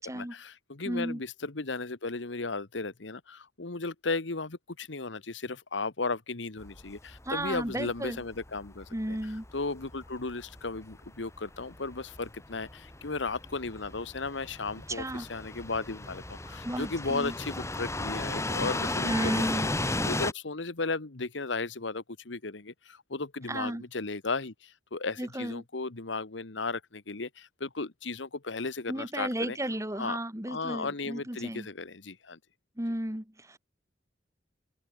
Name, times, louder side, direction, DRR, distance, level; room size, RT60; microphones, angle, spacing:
voice 1, 0.0-19.7 20.0-29.6 29.9-30.2 30.5-32.4, left 3 dB, 85° left, 1.4 m, -35 dB
voice 2, 0.8-1.2 7.3-8.2 8.9-9.4 14.9-15.3 16.6-17.4 19.0-19.7 23.5-23.8 25.2-25.6 28.9-31.7 32.8-33.6, right 1 dB, 15° right, 2.8 m, -34 dB
sound 1, 6.6-20.3, left 2 dB, 15° left, 2.3 m, -35 dB
head